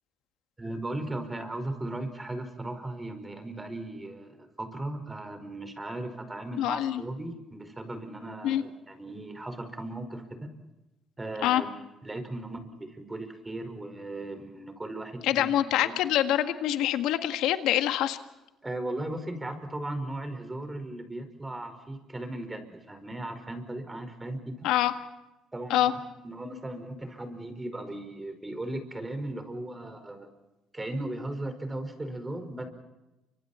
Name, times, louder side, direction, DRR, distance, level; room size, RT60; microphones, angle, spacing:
voice 1, 0.6-10.2 11.2-15.5 15.8-16.0 18.6-24.7 25.5-26.0 26.2-30.3 30.7-32.7, right 1 dB, 15° right, 8 dB, 5.2 m, -37 dB
voice 2, 6.6-7.0 8.4-8.6 11.4-11.6 15.2-18.2 24.6-24.9 25.7-25.9, left 12 dB, 80° left, 8 dB, 1.7 m, -25 dB
30.0 x 25.5 x 4.4 m, 0.98 s
cardioid pair, 95°, 0 cm